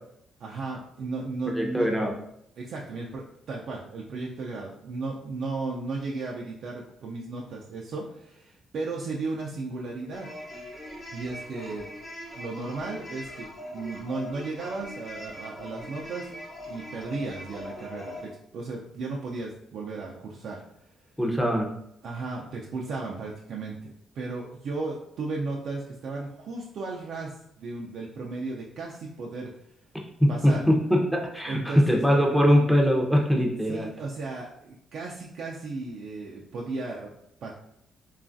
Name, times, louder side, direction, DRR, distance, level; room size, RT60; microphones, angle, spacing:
voice 1, 0.4-1.9 2.6-10.3 11.1-11.9 12.4-16.3 16.7-20.6 22.0-29.5 30.3-30.6 31.5-32.0 33.7-37.1 37.4-37.5, right 3 dB, 65° right, -2 dB, 0.3 m, -35 dB
voice 2, 1.5-2.1 21.2-21.7 30.2-33.9, equal, ahead, 0 dB, 0.6 m, -22 dB
sound 1, 10.1-18.3, left 1 dB, 35° left, 0.9 m, -41 dB
3.0 x 2.3 x 2.5 m, 0.75 s
cardioid pair, 90°, 0 cm